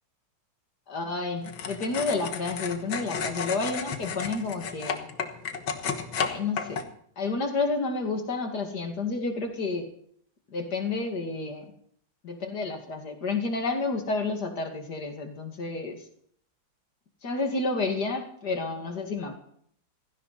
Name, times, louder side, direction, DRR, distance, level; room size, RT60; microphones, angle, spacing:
voice 1, 0.9-5.1 6.2-6.9 7.2-9.9 10.5-11.7 12.2-16.0 17.2-19.4, left 3 dB, 55° left, 4 dB, 2.8 m, -30 dB
sound 1, 1.4-6.8, left 6 dB, 75° left, 2.2 m, -33 dB
16.5 x 15.5 x 4.2 m, 0.63 s
omnidirectional pair, 2.1 m